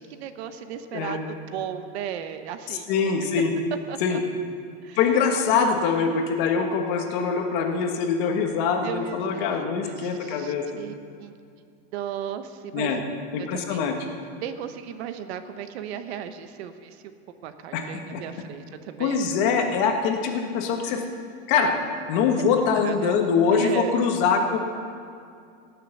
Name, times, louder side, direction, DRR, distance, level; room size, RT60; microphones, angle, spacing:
voice 1, 0.0-2.9 3.9-4.2 4.8-5.0 8.8-11.3 11.9-12.9 13.4-13.9 14.4-17.0 17.4-19.3 22.6-23.2 23.5-23.9, right 9 dB, 70° right, 10 dB, 0.9 m, -36 dB
voice 2, 0.9-1.2 2.9-3.5 4.0-4.2 5.0-10.6 12.7-13.0 13.3-13.9 17.7-17.8 18.1-18.2 19.0-21.0 21.5-21.7 22.1-24.6, left 6 dB, 45° left, 3 dB, 1.4 m, -23 dB
17.5 x 6.8 x 6.6 m, 2.3 s
supercardioid pair, 170°, 34 cm